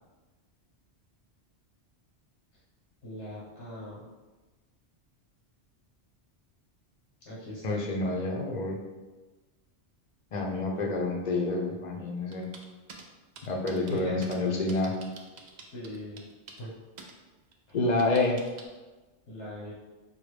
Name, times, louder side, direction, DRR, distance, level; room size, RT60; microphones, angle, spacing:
voice 1, 3.0-4.1 7.3-7.8 13.9-14.3 15.7-16.2 16.6-16.7 17.7-17.8 19.3-19.7, left 1 dB, 90° left, -7 dB, 1.3 m, -40 dB
voice 2, 7.6-8.8 10.3-12.5 13.4-15.0 17.7-18.4, left 2 dB, 50° left, 0 dB, 0.6 m, -28 dB
sound 1, 12.3-13.0 13.4-14.4 14.7-16.7 17.0-17.1 17.5-18.6, right 4 dB, 60° right, 0.5 m, -47 dB
4.7 x 2.2 x 3.2 m, 1.2 s
omnidirectional pair, 1.2 m